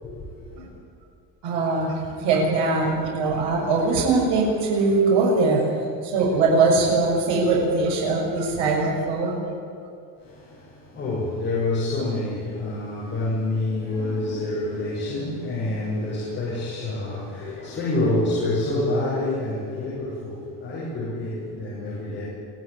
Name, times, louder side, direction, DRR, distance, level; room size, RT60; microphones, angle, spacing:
voice 1, 0.0-0.7 10.2-22.2, left 2 dB, 25° left, -7 dB, 6.7 m, -27 dB
voice 2, 1.4-5.6 6.0-9.4, right 3 dB, 90° right, -2 dB, 6.3 m, -21 dB
24.5 x 16.5 x 9.9 m, 2.4 s
cardioid pair, 175°, 43 cm